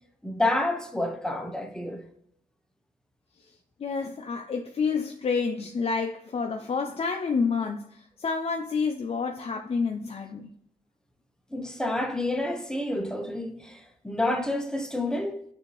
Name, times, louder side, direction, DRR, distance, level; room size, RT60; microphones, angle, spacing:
voice 1, 0.2-2.0 11.5-15.4, left 2 dB, 5° left, 0.7 m, -29 dB
voice 2, 3.8-10.5, left 5 dB, 45° left, 0.5 m, -29 dB
6.5 x 2.7 x 3.1 m
cardioid pair, 80°, 15 cm